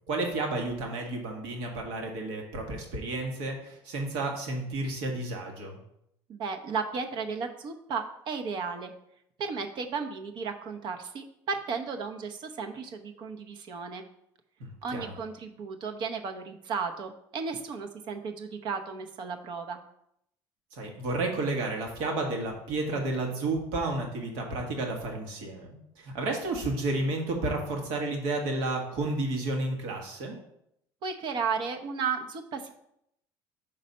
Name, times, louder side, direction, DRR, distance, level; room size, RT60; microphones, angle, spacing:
voice 1, 0.1-5.8 14.6-15.1 20.7-30.4, right 2 dB, 80° right, 1 dB, 1.5 m, -31 dB
voice 2, 6.3-8.9 9.4-14.0 14.8-19.8 31.0-32.7, right 5 dB, 55° right, 5 dB, 0.8 m, -34 dB
5.4 x 4.1 x 5.4 m, 0.76 s
cardioid pair, 110°, 9 cm